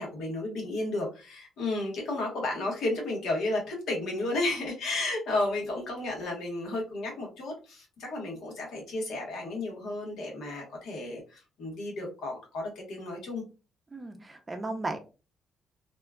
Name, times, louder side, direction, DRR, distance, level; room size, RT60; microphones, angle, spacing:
voice 1, 0.0-13.4, left 2 dB, 80° left, -1 dB, 1.3 m, -33 dB
voice 2, 13.9-15.0, right 2 dB, 20° right, 6 dB, 0.5 m, -35 dB
2.9 x 2.3 x 2.2 m, 0.32 s
cardioid pair, 90°, 0 cm